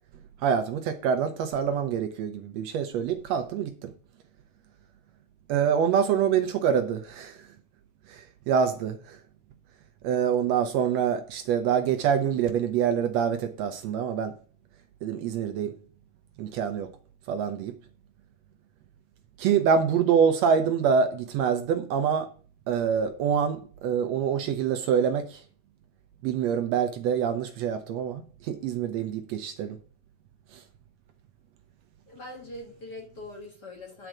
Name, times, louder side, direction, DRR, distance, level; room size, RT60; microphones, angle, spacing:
voice 1, 0.4-3.9 5.5-7.5 8.1-9.2 10.0-14.3 15.0-15.7 16.4-16.9 17.3-17.7 19.4-22.3 22.7-25.4 26.2-29.8 30.5-30.6, right 7 dB, 75° right, 1.7 m, -26 dB
voice 2, 32.1-34.1, left 2 dB, 45° left, 1.7 m, -42 dB
9.0 x 4.6 x 6.0 m
omnidirectional pair, 3.3 m